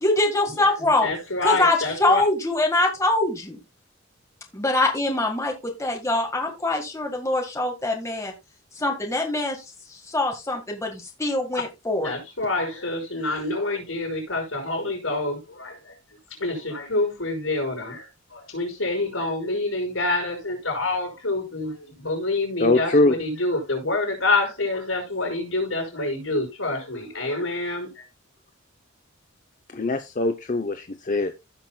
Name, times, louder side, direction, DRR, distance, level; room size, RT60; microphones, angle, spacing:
voice 1, 0.0-1.1 1.4-3.6 4.5-8.3 8.7-12.1, left 2 dB, 15° left, 1.7 m, -24 dB
voice 2, 1.0-2.2 12.0-15.8 16.4-18.0 18.3-27.9, left 2 dB, 75° left, 5.3 m, -27 dB
voice 3, 22.6-23.2 29.7-31.4, left 2 dB, 40° left, 0.6 m, -22 dB
16.0 x 5.9 x 2.3 m
head